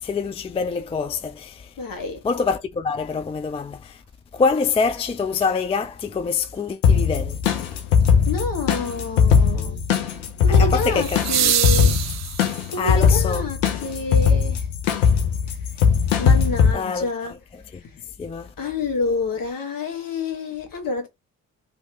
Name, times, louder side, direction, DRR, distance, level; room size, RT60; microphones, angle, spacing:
voice 1, 0.0-1.7 2.2-4.0 4.3-7.7 10.5-11.5 12.8-13.4 16.7-17.3 17.7-17.8 18.2-18.5, left 5 dB, 15° left, 0.3 m, -25 dB
voice 2, 1.8-2.2 8.2-9.8 10.4-12.0 12.7-14.7 15.5-15.6 16.2-17.3 17.8-17.9 18.6-21.1, left 3 dB, 55° left, 1.2 m, -28 dB
sound 1, 5.4-5.5 11.0-12.8 15.0-15.1, right 10 dB, 45° right, 0.5 m, -24 dB
sound 2, 6.8-16.7, left 6 dB, 85° left, 0.7 m, -19 dB
2.9 x 2.6 x 2.7 m
hypercardioid pair, 40°, 40 cm